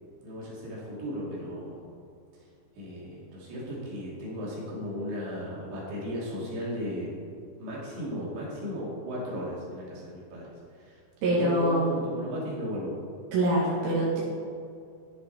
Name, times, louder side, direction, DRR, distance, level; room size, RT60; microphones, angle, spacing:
voice 1, 0.2-1.9 2.7-7.1 7.6-11.0 11.3-12.9, equal, 65° right, -6 dB, 4.9 m, -35 dB
voice 2, 11.2-11.9 13.3-14.2, right 1 dB, 85° right, -6 dB, 4.1 m, -24 dB
10.5 x 10.0 x 4.3 m, 2.3 s
omnidirectional pair, 5.5 m